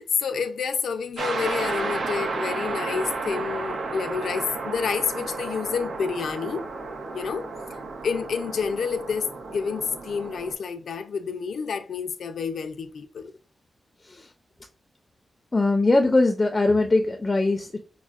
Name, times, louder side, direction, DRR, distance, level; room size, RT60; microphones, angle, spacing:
voice 1, 0.0-6.6 7.1-7.5 8.0-13.3, left 6 dB, 85° left, 0.4 m, -29 dB
sound 1, 1.2-10.5, right 3 dB, 85° right, 0.7 m, -32 dB
voice 2, 15.5-17.8, left 2 dB, 25° left, 0.4 m, -21 dB
5.2 x 2.0 x 2.4 m
wide cardioid pair, 110°, 0 cm